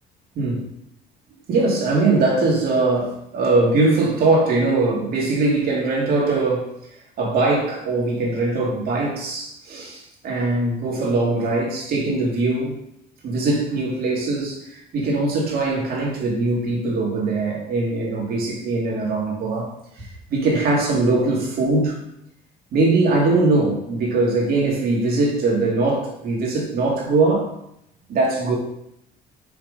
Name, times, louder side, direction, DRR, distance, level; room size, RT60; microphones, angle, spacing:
voice 1, 1.5-6.8 7.2-12.8 13.2-19.7 20.0-22.0 22.7-27.5 28.1-28.5, right 3 dB, 65° right, -3 dB, 2.6 m, -21 dB
6.0 x 4.9 x 5.2 m, 0.77 s
cardioid pair, 110°, 17 cm